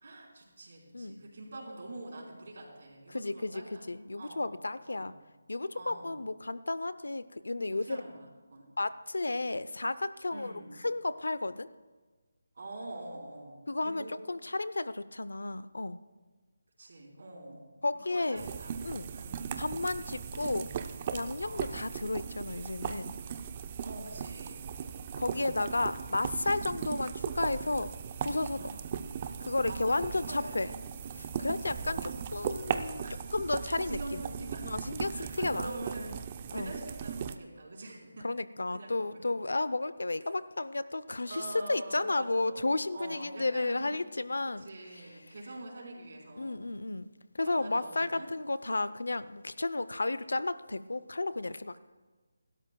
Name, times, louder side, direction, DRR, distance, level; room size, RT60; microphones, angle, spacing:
voice 1, 0.0-3.9 4.2-4.5 4.8-5.1 5.7-6.2 7.9-8.7 10.3-10.7 12.5-14.2 16.8-17.7 18.0-18.7 19.1-19.5 21.4-21.8 23.8-24.9 28.5-28.8 29.7-30.7 31.6-32.1 33.0-33.2 33.8-34.7 35.1-36.2 36.5-38.3 38.7-39.2 41.3-42.6 42.9-43.9 44.6-46.7 47.4-48.3, right 2 dB, 60° right, -2 dB, 4.5 m, -45 dB
voice 2, 3.1-5.1 5.5-8.0 8.8-10.5 10.8-11.7 13.7-16.0 17.8-18.4 18.8-19.1 19.6-20.7 21.1-23.1 25.2-27.9 28.2-28.8 29.4-30.7 31.1-34.2 34.6-35.7 36.5-36.7 38.2-44.7 44.9-45.2 46.4-47.1 47.3-51.8, left 2 dB, 90° left, 15 dB, 0.6 m, -33 dB
sound 1, 18.4-37.4, right 7 dB, 25° right, 0.5 m, -38 dB
26.5 x 12.5 x 2.3 m, 1.3 s
figure-of-eight pair, 170°, 0 cm